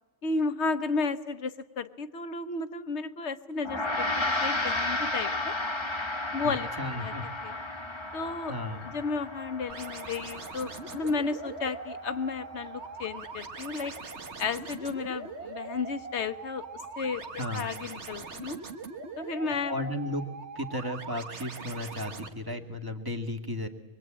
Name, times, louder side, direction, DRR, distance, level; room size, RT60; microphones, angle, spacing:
voice 1, 0.2-5.5 6.3-6.7 7.0-7.1 7.4-7.5 8.1-8.5 8.8-13.9 14.4-16.6 17.0-18.6 19.2-19.9, left 4 dB, 70° left, 11 dB, 1.4 m, -33 dB
Gong, 3.6-13.2, left 2 dB, 25° left, 1.4 m, -34 dB
voice 2, 6.4-7.3 8.5-8.9 17.4-17.7 19.7-20.3 20.6-23.7, left 1 dB, 20° right, 5 dB, 1.8 m, -34 dB
sound 1, 9.7-22.3, right 4 dB, 70° right, 1.7 m, -41 dB
24.5 x 23.5 x 8.8 m, 1.1 s
omnidirectional pair, 1.2 m